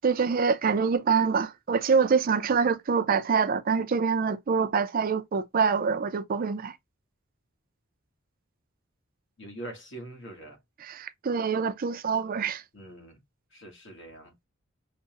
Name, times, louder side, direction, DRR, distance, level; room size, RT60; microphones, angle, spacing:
voice 1, 0.0-6.8 10.8-12.6, right 5 dB, 45° right, 0.4 m, -25 dB
voice 2, 9.4-10.6 12.7-13.2 13.5-14.3, right 1 dB, 65° left, 1.3 m, -43 dB
5.7 x 2.1 x 2.8 m
head